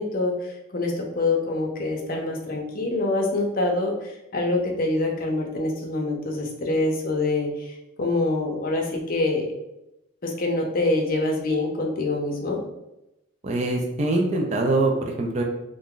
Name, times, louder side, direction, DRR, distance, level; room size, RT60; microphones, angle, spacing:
voice 1, 0.0-9.5 10.2-12.6, left 2 dB, 45° left, 1 dB, 0.5 m, -25 dB
voice 2, 13.4-15.4, right 2 dB, 35° right, 1 dB, 0.4 m, -23 dB
2.5 x 2.2 x 3.6 m, 0.89 s
head